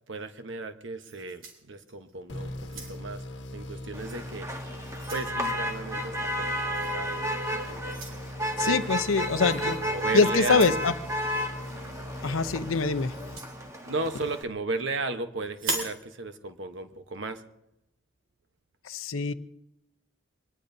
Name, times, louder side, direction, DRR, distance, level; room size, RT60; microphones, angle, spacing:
voice 1, 0.1-3.2 3.5-4.5 5.1-8.0 8.6-8.9 9.1-10.8 13.8-17.4, right 3 dB, 65° right, 1.1 m, -35 dB
sound 1, 1.0-2.1 2.6-3.2 4.0-4.2 4.6-5.3 6.7-7.0 7.9-8.2 9.5-9.7 10.5-10.9 13.1-13.5 15.5-16.0, right 3 dB, 85° right, 3.2 m, -37 dB
sound 2, 2.3-14.0, left 1 dB, 60° left, 1.4 m, -40 dB
Motor vehicle (road), 3.9-14.4, equal, 15° right, 1.3 m, -33 dB
voice 2, 8.6-9.9 10.1-10.9 12.2-13.1 18.9-19.3, left 4 dB, 85° left, 0.7 m, -24 dB
24.0 x 19.5 x 2.7 m
head